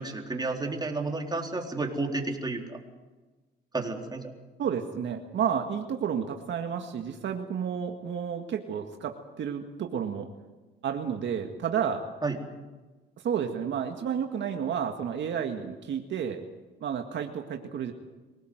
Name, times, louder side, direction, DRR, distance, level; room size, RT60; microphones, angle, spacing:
voice 1, 0.0-2.8 3.7-4.3 12.2-12.3, right 3 dB, 20° right, 1 dB, 4.1 m, -31 dB
voice 2, 4.6-10.3 10.8-12.0 13.2-16.4 16.8-17.9, right 8 dB, 65° right, 4 dB, 1.9 m, -31 dB
24.5 x 18.0 x 8.0 m, 1.2 s
cardioid pair, 90°, 20 cm